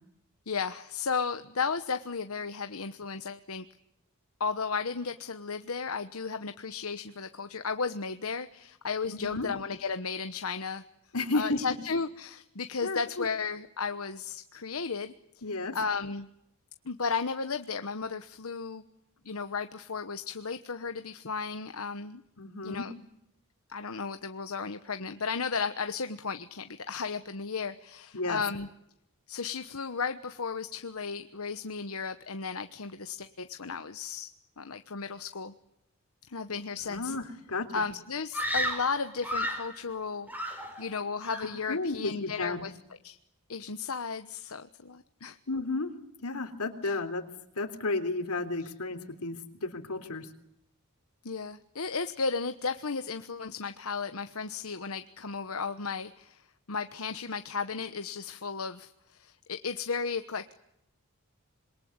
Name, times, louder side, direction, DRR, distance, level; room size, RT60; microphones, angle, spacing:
voice 1, 0.5-3.7 4.4-10.8 11.3-15.1 15.7-16.3 16.8-18.9 19.2-22.2 22.6-22.9 23.7-28.7 29.3-34.3 34.6-35.5 36.2-37.1 37.7-40.3 40.8-42.8 43.0-43.2 43.5-45.4 46.8-47.0 48.6-48.7 51.2-60.5, left 5 dB, 70° left, 9 dB, 1.1 m, -34 dB
voice 2, 9.1-9.5 11.1-11.6 12.8-13.3 15.4-15.8 22.4-22.9 28.1-28.4 36.7-37.8 41.7-42.6 45.5-45.9 46.2-47.2 47.6-50.3, left 3 dB, 90° left, 8 dB, 3.5 m, -33 dB
Screaming, 38.3-39.8 40.3-40.9 41.2-41.6, equal, 10° right, 5.5 m, -33 dB
27.0 x 22.5 x 9.6 m, 0.81 s
head